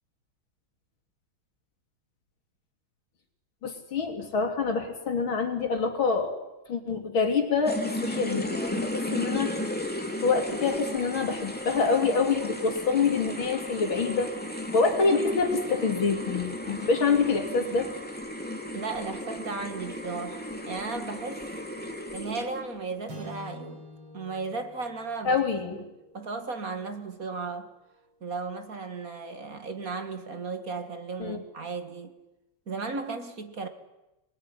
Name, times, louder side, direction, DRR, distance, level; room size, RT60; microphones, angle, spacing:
voice 1, 3.6-6.3 6.7-9.5 10.2-14.3 14.7-17.9 25.3-25.8 31.2-31.4, left 4 dB, 90° left, 3.8 m, -26 dB
sound 1, 7.7-22.7, left 1 dB, 5° left, 2.5 m, -35 dB
voice 2, 18.7-21.5 22.1-23.8 24.1-25.8 26.1-27.7 28.2-32.2 32.7-33.7, right 4 dB, 45° right, 2.3 m, -35 dB
sound 2, 23.1-27.6, left 1 dB, 75° right, 5.4 m, -47 dB
24.5 x 21.0 x 9.9 m
omnidirectional pair, 2.1 m